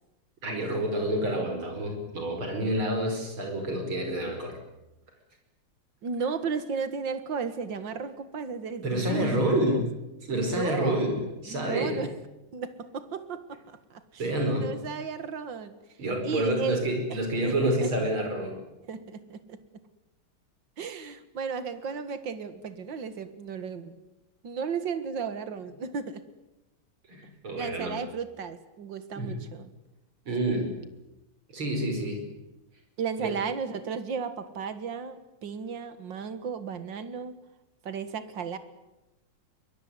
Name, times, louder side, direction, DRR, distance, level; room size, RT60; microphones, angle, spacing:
voice 1, 0.4-4.6 8.8-9.8 10.3-12.0 14.2-14.7 16.0-18.5 27.1-28.0 29.2-29.4 30.3-30.7 31.5-32.2 33.2-33.3, right 1 dB, 80° right, 4 dB, 5.9 m, -28 dB
voice 2, 6.0-9.4 9.7-9.8 10.3-11.0 11.5-12.1 12.5-14.2 14.6-15.7 16.2-17.5 17.8-17.9 18.8-19.8 20.8-24.0 24.4-26.2 27.6-29.7 33.0-37.4 37.8-38.6, right 6 dB, 60° right, 12 dB, 2.3 m, -34 dB
23.0 x 21.5 x 9.8 m, 1.0 s
omnidirectional pair, 2.3 m